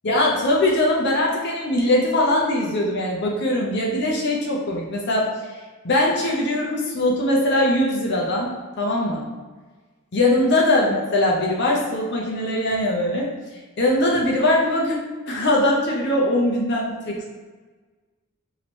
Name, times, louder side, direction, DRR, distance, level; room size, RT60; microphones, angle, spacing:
voice 1, 0.0-5.3 5.8-9.2 10.1-13.3 13.8-15.0 15.3-17.3, left 1 dB, 55° left, -2 dB, 0.7 m, -21 dB
3.0 x 2.9 x 4.4 m, 1.4 s
head